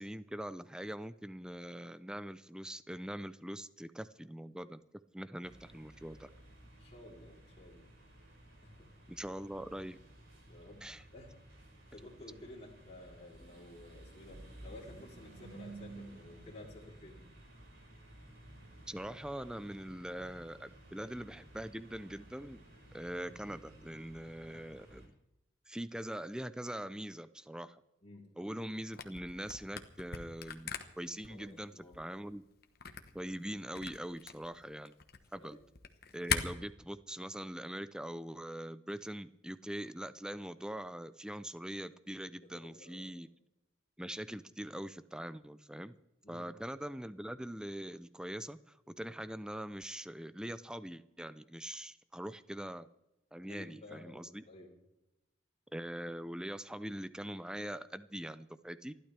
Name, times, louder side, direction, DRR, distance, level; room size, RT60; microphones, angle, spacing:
voice 1, 0.0-4.8 5.1-6.3 9.1-10.0 10.8-11.1 18.9-22.6 22.9-25.1 25.7-27.8 28.4-30.7 31.0-32.4 33.1-34.9 35.3-35.6 36.1-43.3 44.0-45.9 46.3-52.9 53.3-54.4 55.7-58.9, right 1 dB, 5° right, 14 dB, 0.5 m, -43 dB
sound 1, 5.4-25.1, right 1 dB, 90° right, 6.0 m, -55 dB
voice 2, 6.8-7.9 8.6-8.9 10.5-10.9 11.1-11.4 11.7-17.2 28.0-28.2 31.3-32.0 35.4-35.6 42.4-43.1 46.2-46.5 53.5-54.7, left 1 dB, 30° left, -3 dB, 3.6 m, -53 dB
Camera, 28.9-36.4, left 7 dB, 50° left, 1.2 m, -41 dB
28.0 x 12.0 x 3.4 m, 0.92 s
head